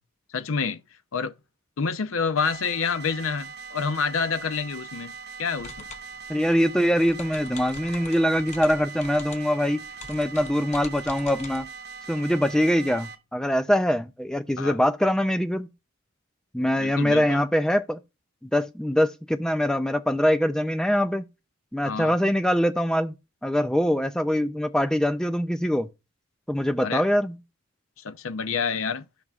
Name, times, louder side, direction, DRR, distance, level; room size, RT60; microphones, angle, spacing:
voice 1, 0.3-0.8 1.1-1.3 1.8-5.1 5.4-5.9 14.6-14.8 16.8-17.4 21.8-22.2 26.8-27.0 28.0-29.1, left 5 dB, 75° left, 0.6 m, -28 dB
sound 1, 2.4-13.2, right 6 dB, 50° right, 0.8 m, -41 dB
sound 2, 5.6-11.6, left 3 dB, 30° left, 0.8 m, -44 dB
voice 2, 6.3-11.7 12.1-15.7 16.5-18.0 18.4-21.3 21.7-23.1 23.4-25.9 26.5-27.4, equal, 5° left, 0.4 m, -23 dB
15.0 x 5.3 x 2.4 m
head